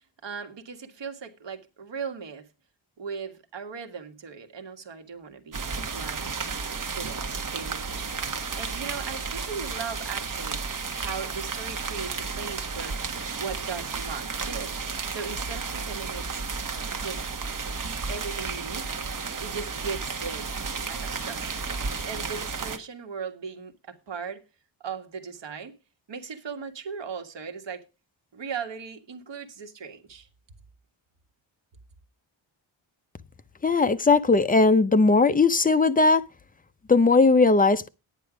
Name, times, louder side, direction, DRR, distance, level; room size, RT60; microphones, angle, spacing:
voice 1, 0.2-2.5 3.0-5.6 5.9-6.3 6.9-12.9 13.4-14.7 15.1-16.4 17.0-17.2 18.1-18.8 19.4-20.5 20.9-21.6 22.0-24.4 24.8-25.7 26.1-27.9 28.3-30.3, right 6 dB, 65° right, 1.8 m, -38 dB
sound 1, 5.5-22.8, right 5 dB, 40° right, 1.3 m, -33 dB
voice 2, 33.6-36.2 36.9-37.9, left 3 dB, 20° left, 0.6 m, -19 dB
10.5 x 9.6 x 5.0 m
wide cardioid pair, 145°, 47 cm